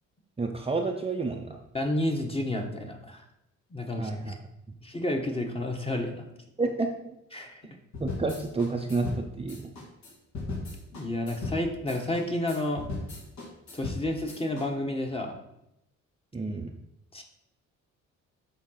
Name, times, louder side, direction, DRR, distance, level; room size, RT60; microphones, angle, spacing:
voice 1, 0.4-1.6 4.0-4.4 6.6-7.1 8.0-9.7 16.3-16.7, right 3 dB, 20° right, 2 dB, 0.7 m, -30 dB
voice 2, 1.7-3.2 3.7-4.4 4.8-6.3 7.3-7.6 10.9-12.9 13.7-15.4 17.1-17.2, left 1 dB, 20° left, 3 dB, 1.3 m, -30 dB
sound 1, 7.9-14.7, left 3 dB, 70° left, 2.4 m, -37 dB
7.4 x 3.9 x 5.7 m, 0.84 s
cardioid pair, 90°, 30 cm